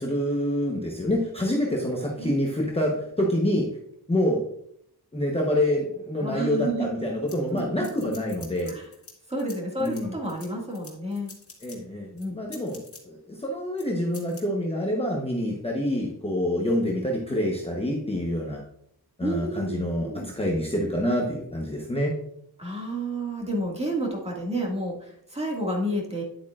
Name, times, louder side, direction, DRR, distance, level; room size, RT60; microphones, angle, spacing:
voice 1, 0.0-3.7 4.1-4.4 5.1-8.7 9.8-10.1 11.6-12.1 12.3-18.6 19.2-22.2, left 1 dB, 15° left, -1 dB, 1.0 m, -27 dB
voice 2, 6.2-6.9 7.5-8.1 8.7-8.9 9.3-11.4 12.1-12.4 19.2-20.3 22.6-26.2, right 1 dB, 15° right, -2 dB, 2.0 m, -30 dB
sound 1, 7.3-9.1 9.4-11.8 12.2-13.0 13.8-13.9 14.1-14.4, left 4 dB, 35° left, 1.9 m, -46 dB
9.7 x 8.2 x 2.4 m, 0.71 s
wide cardioid pair, 165°, 39 cm